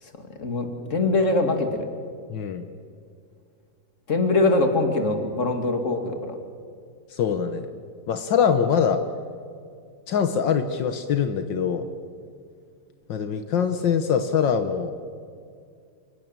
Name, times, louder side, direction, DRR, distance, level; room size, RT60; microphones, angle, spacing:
voice 1, 0.2-1.8 4.1-6.3, left 2 dB, 40° left, 6 dB, 2.8 m, -23 dB
voice 2, 2.3-2.6 7.1-7.7 8.1-9.0 10.1-11.9 13.1-14.9, left 7 dB, 80° left, 8 dB, 1.9 m, -23 dB
28.5 x 16.5 x 8.9 m, 2.3 s
omnidirectional pair, 2.0 m